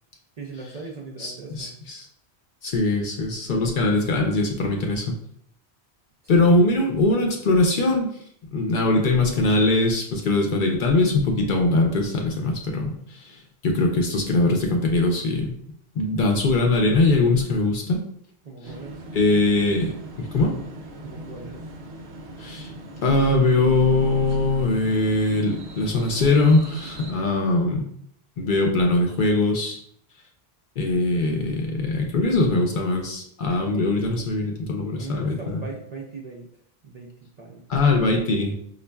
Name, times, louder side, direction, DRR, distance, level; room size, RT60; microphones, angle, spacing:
voice 1, 0.4-1.8 3.8-3.9 18.4-19.0 21.0-21.6 35.0-36.5 36.8-37.6, right 4 dB, 55° right, -1 dB, 0.5 m, -39 dB
voice 2, 1.2-2.1 2.6-5.1 6.3-8.1 8.5-13.0 13.2-15.6 16.0-18.0 19.1-20.6 22.4-22.7 23.0-27.8 28.4-29.8 30.8-35.6 37.7-38.6, left 2 dB, 60° left, 2 dB, 0.6 m, -21 dB
sound 1, 18.6-27.1, right 1 dB, 80° right, 0.9 m, -40 dB
5.1 x 2.4 x 2.2 m, 0.66 s
omnidirectional pair, 1.1 m